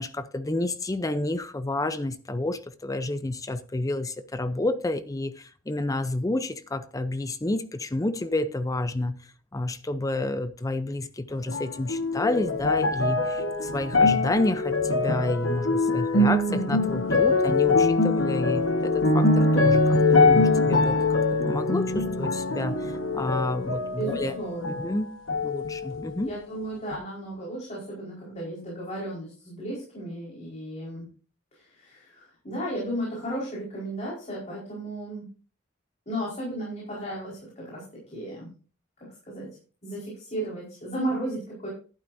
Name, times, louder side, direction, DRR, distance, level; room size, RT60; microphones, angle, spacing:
voice 1, 0.0-9.2 9.5-24.3 24.6-25.1 25.4-26.3, left 2 dB, 15° left, 0.5 m, -30 dB
sound 1, 11.5-25.0 25.3-26.2 26.9-27.0, left 3 dB, 80° left, 1.4 m, -23 dB
voice 2, 23.9-24.8 26.2-31.1 31.5-35.3 36.1-38.5 39.3-39.5 39.8-41.7, right 1 dB, 35° left, 4.6 m, -34 dB
12.0 x 11.5 x 2.6 m
head